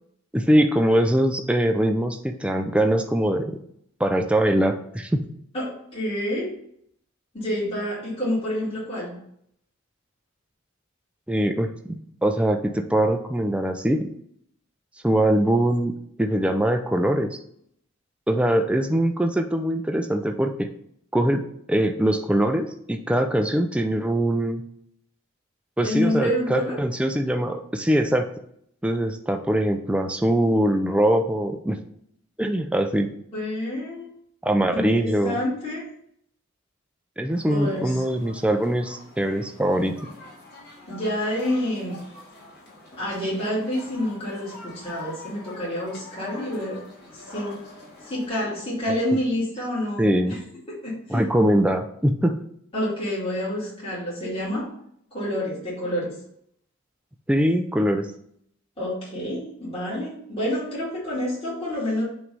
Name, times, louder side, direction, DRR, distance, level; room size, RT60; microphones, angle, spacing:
voice 1, 0.3-3.6 4.0-5.3 11.3-11.9 12.2-14.1 15.0-15.9 16.2-17.4 18.3-20.7 21.1-21.4 21.7-24.6 25.8-28.3 28.8-31.8 32.4-33.1 34.4-35.4 37.2-40.0 50.0-50.3 51.1-52.4 57.3-58.1, right 1 dB, 5° right, 5 dB, 0.4 m, -22 dB
voice 2, 5.5-6.5 7.3-9.1 25.8-26.8 33.3-34.1 34.7-35.9 37.5-38.0 40.9-42.0 43.0-46.8 47.1-47.6 48.0-50.4 50.7-51.3 52.7-54.7 55.1-56.2 58.8-62.0, left 1 dB, 25° left, -8 dB, 2.1 m, -28 dB
sound 1, 37.3-48.3, left 2 dB, 50° left, 2.1 m, -44 dB
5.8 x 3.2 x 5.3 m, 0.69 s
head